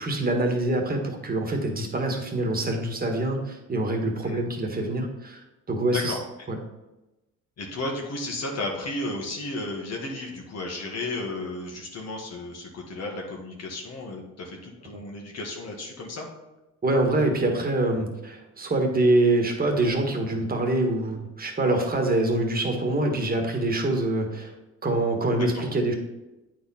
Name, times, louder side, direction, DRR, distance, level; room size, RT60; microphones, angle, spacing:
voice 1, 0.0-5.4 5.7-6.2 6.5-6.6 16.8-24.5 24.8-25.9, right 2 dB, 30° right, 2 dB, 1.6 m, -25 dB
voice 2, 7.6-16.3 25.4-25.5, left 2 dB, 55° left, 0 dB, 1.6 m, -33 dB
8.6 x 4.6 x 4.3 m, 1.0 s
cardioid pair, 90°, 30 cm